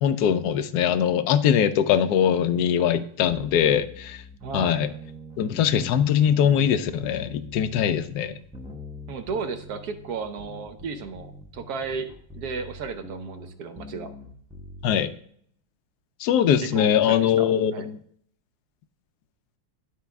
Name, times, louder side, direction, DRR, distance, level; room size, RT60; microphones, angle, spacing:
voice 1, 0.0-4.2 4.5-4.9 5.4-8.3 14.8-15.1 16.2-17.9, left 9 dB, 70° left, 11 dB, 1.0 m, -22 dB
sound 1, 3.3-15.1, left 2 dB, 5° right, 0.3 m, -43 dB
voice 2, 4.4-4.8 9.1-14.1 16.6-17.9, right 5 dB, 65° right, 8 dB, 1.1 m, -34 dB
11.5 x 4.7 x 3.4 m, 0.62 s
omnidirectional pair, 2.1 m